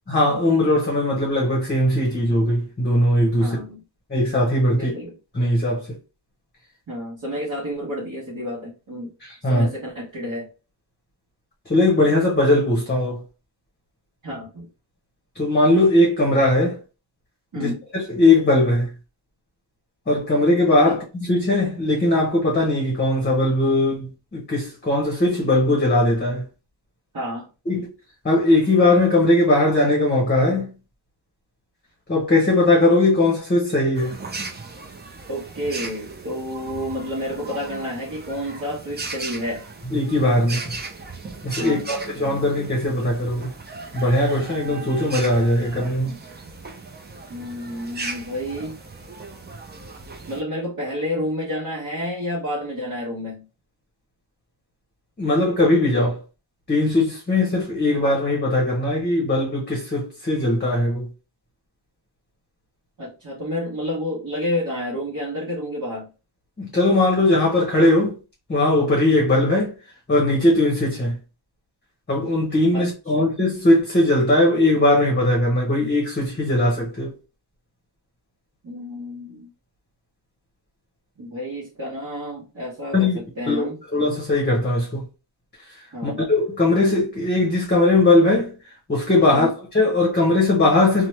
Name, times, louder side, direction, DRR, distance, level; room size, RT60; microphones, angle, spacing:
voice 1, 0.1-3.6 4.1-4.9 5.3-6.0 9.2-9.7 11.7-13.2 15.3-16.8 17.5-18.9 20.1-26.5 27.7-27.9 28.2-30.7 32.1-34.2 39.9-40.6 41.4-43.5 43.9-46.2 55.2-56.2 56.7-61.1 66.6-68.2 68.5-69.8 70.1-71.2 72.1-77.1 82.9-83.2 83.5-85.1 85.7-91.1, left 2 dB, 20° left, 0.8 m, -19 dB
voice 2, 3.4-3.8 4.7-5.1 6.9-9.1 9.4-10.5 14.2-14.7 17.5-17.8 20.9-21.0 27.1-27.5 35.3-39.7 41.6-41.9 47.3-48.8 50.3-53.4 63.0-66.1 72.7-72.9 73.2-73.3 78.6-79.5 81.2-83.8 85.9-86.2 89.3-89.5, left 1 dB, 45° right, 1.0 m, -30 dB
sound 1, 33.9-50.4, right 3 dB, 20° right, 0.4 m, -37 dB
2.9 x 2.1 x 3.1 m
wide cardioid pair, 140°, 48 cm